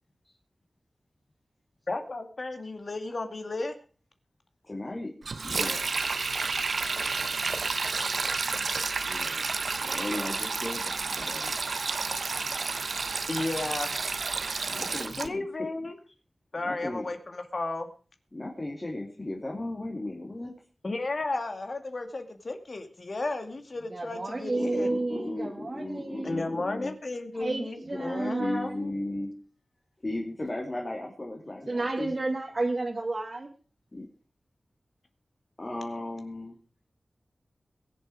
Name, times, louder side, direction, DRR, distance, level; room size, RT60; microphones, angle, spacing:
voice 1, 1.9-3.8 13.3-13.9 15.2-16.0 16.5-17.9 20.8-24.9 26.2-28.7, left 2 dB, 55° left, 7 dB, 2.3 m, -33 dB
voice 2, 4.6-5.1 5.4-5.9 9.0-9.5 9.8-11.6 14.7-15.7 16.5-17.1 18.3-20.5 24.5-26.9 27.9-29.3 30.0-32.1 33.9-34.1 35.6-36.6, left 1 dB, 30° left, -1 dB, 3.1 m, -36 dB
Sink (filling or washing), 5.2-15.3, right 4 dB, 80° right, 1.0 m, -30 dB
voice 3, 23.9-26.4 27.3-28.9 31.7-33.5, right 2 dB, 45° right, 0 dB, 2.0 m, -31 dB
22.0 x 7.6 x 4.9 m, 0.38 s
wide cardioid pair, 80°, 0 cm